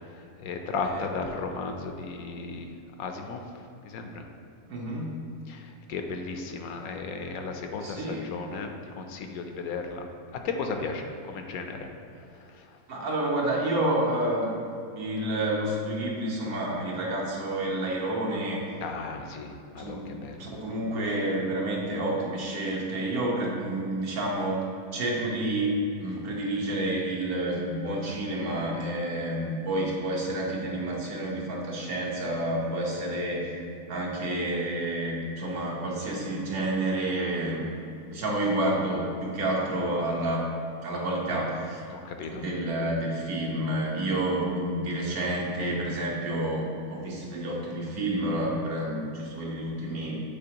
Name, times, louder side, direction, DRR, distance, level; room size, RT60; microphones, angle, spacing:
voice 1, 0.4-2.7 3.0-3.4 3.8-4.2 5.5-8.7 9.0-10.1 10.4-11.9 18.8-20.4 41.9-42.4, left 4 dB, 80° left, 4 dB, 1.1 m, -35 dB
voice 2, 4.7-5.2 7.8-8.3 12.9-14.5 14.9-18.7 19.8-24.6 24.9-33.5 33.9-37.7 38.1-40.4 40.8-41.9 42.3-50.2, right 1 dB, 80° right, -3 dB, 1.5 m, -29 dB
8.6 x 4.3 x 2.9 m, 2.6 s
omnidirectional pair, 1.6 m